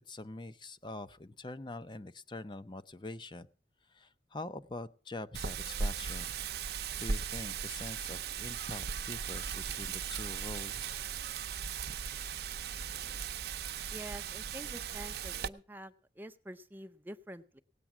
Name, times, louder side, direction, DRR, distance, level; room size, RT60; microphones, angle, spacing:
voice 1, 0.1-3.5 3.9-6.3 6.7-11.0, left 2 dB, 25° left, 12 dB, 0.7 m, -44 dB
Wind, 5.3-15.5, right 6 dB, 65° right, 0.6 m, -38 dB
voice 2, 13.9-17.6, right 1 dB, 10° right, 8 dB, 0.6 m, -47 dB
18.0 x 8.4 x 6.0 m, 0.41 s
head